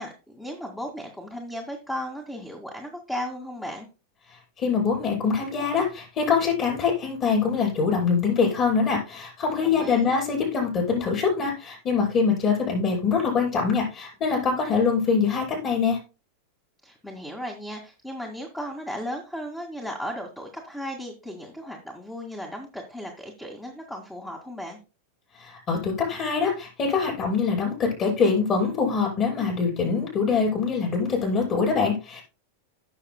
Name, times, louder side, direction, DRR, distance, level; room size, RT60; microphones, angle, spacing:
voice 1, 0.0-3.9 9.6-10.2 16.8-24.8, equal, 5° left, 1 dB, 2.1 m, -35 dB
voice 2, 4.6-16.0 25.4-32.2, left 5 dB, 35° left, -1 dB, 5.8 m, -24 dB
16.5 x 6.7 x 2.2 m, 0.30 s
figure-of-eight pair, 90°, 0 cm